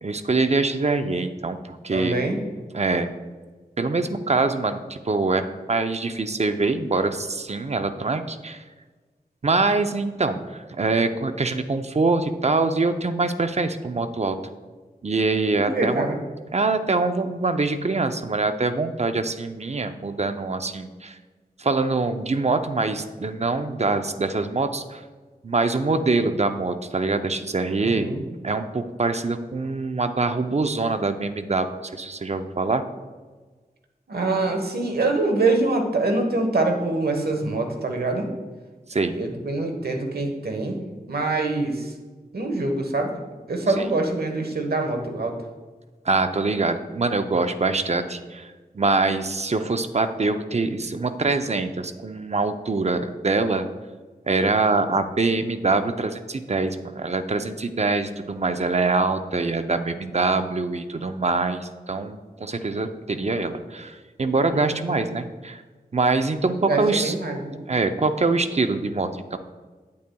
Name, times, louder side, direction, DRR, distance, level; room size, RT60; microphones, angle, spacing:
voice 1, 0.0-2.2 2.7-3.1 3.8-8.6 9.4-14.4 15.0-16.1 16.5-21.2 21.6-25.0 25.4-28.1 28.4-32.8 38.9-39.2 43.8-43.9 46.1-48.5 48.7-53.7 54.3-65.6 65.9-67.1 67.7-69.4, right 3 dB, 45° right, 9 dB, 0.6 m, -24 dB
voice 2, 1.9-2.4 15.5-16.2 27.8-28.2 34.1-38.3 39.1-40.8 41.1-41.9 42.3-43.1 43.5-45.3 64.5-64.7 66.7-67.6, right 2 dB, 70° right, 4 dB, 1.2 m, -25 dB
8.9 x 8.5 x 2.3 m, 1.3 s
cardioid pair, 50°, 16 cm